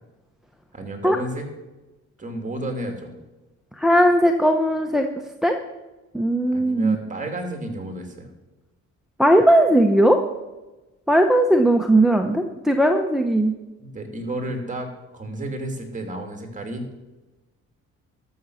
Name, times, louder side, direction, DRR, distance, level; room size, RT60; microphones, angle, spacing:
voice 1, 0.7-1.5 2.2-3.2 6.5-8.3 13.8-16.9, right 1 dB, 25° right, 4 dB, 2.7 m, -32 dB
voice 2, 3.8-5.1 5.4-5.6 6.1-7.0 9.2-10.2 11.1-13.5, right 1 dB, ahead, 5 dB, 0.8 m, -18 dB
13.0 x 7.0 x 6.3 m, 1.1 s
cardioid pair, 90°, 30 cm